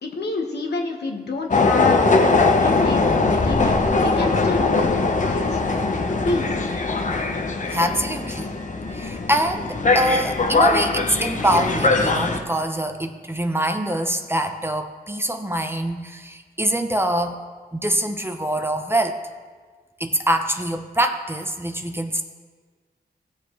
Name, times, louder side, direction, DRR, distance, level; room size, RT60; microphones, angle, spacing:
voice 1, 0.0-5.6 5.9-6.6, left 3 dB, 75° left, 2 dB, 1.3 m, -29 dB
sound 1, 1.5-12.4, left 3 dB, 45° left, 1.0 m, -21 dB
voice 2, 7.7-8.5 8.9-17.4 17.7-19.2 20.0-22.2, right 1 dB, 15° right, 6 dB, 0.8 m, -24 dB
16.5 x 6.9 x 3.2 m, 1.5 s
cardioid pair, 60°, 17 cm